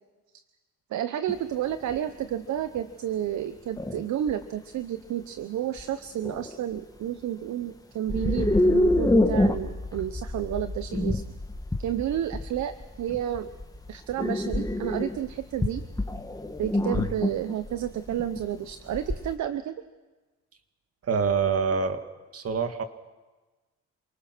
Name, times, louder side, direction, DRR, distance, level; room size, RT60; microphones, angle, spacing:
voice 1, 0.9-11.2 11.8-13.5 13.9-15.8 16.6-19.8, right 11 dB, 70° right, 10 dB, 0.9 m, -31 dB
sound 1, 1.3-1.4 1.9-2.1 2.8-2.9 3.8-4.4 5.8-5.9 6.2-6.6 8.1-19.3, left 1 dB, 10° left, 1.7 m, -27 dB
voice 2, 21.0-22.0 22.3-22.8, right 5 dB, 50° right, 7 dB, 2.2 m, -26 dB
28.0 x 20.0 x 6.1 m, 1.2 s
cardioid pair, 90°, 30 cm